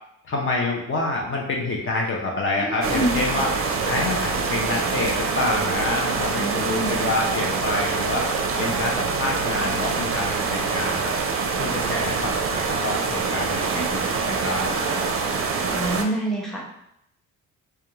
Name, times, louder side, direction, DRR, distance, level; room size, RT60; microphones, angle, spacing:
voice 1, 0.3-3.5 3.8-8.3 8.6-11.1 11.6-14.8, left 2 dB, 45° left, -1 dB, 0.5 m, -27 dB
voice 2, 2.6-3.1 6.3-7.1 13.7-14.4 15.7-16.6, right 1 dB, ahead, -3 dB, 0.6 m, -28 dB
sound 1, 2.8-16.0, right 4 dB, 50° right, 0.4 m, -25 dB
2.4 x 2.2 x 3.0 m, 0.78 s
cardioid pair, 90°, 30 cm